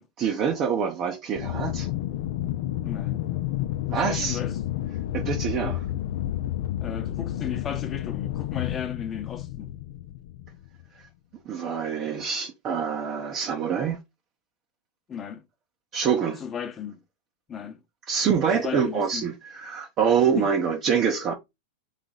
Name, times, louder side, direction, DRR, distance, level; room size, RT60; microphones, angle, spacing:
voice 1, 0.2-1.9 3.9-4.4 5.1-5.9 11.5-14.0 15.9-16.4 18.1-21.3, right 7 dB, 40° right, 0.9 m, -25 dB
Aircraft, 1.4-10.8, left 13 dB, 65° left, 0.6 m, -30 dB
voice 2, 2.8-3.3 3.9-4.6 6.8-9.7 15.1-15.4 16.4-17.0 17.5-17.8 18.5-19.3 20.4-20.5, left 7 dB, 25° left, 1.0 m, -35 dB
3.9 x 3.4 x 3.8 m
hypercardioid pair, 115°, 0 cm